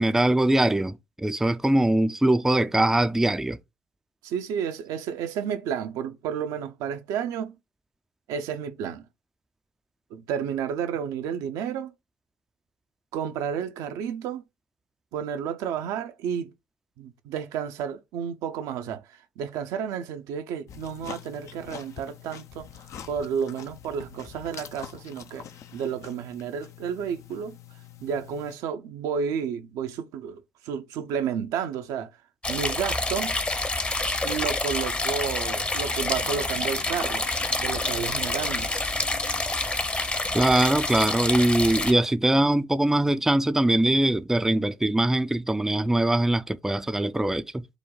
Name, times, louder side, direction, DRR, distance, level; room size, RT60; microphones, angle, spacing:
voice 1, 0.0-3.6 40.3-47.7, right 1 dB, 5° right, 0.4 m, -22 dB
voice 2, 4.2-7.6 8.3-9.1 10.1-11.9 13.1-14.4 15.1-16.5 17.0-22.7 23.1-25.5 25.7-27.6 28.0-32.1 32.5-33.4 34.2-37.3 37.6-38.7, right 7 dB, 65° right, 0.6 m, -31 dB
sound 1, 20.7-28.6, left 9 dB, 55° left, 0.5 m, -45 dB
sound 2, 32.4-41.9, left 2 dB, 20° left, 0.8 m, -27 dB
5.0 x 2.2 x 3.7 m
hypercardioid pair, 50°, 6 cm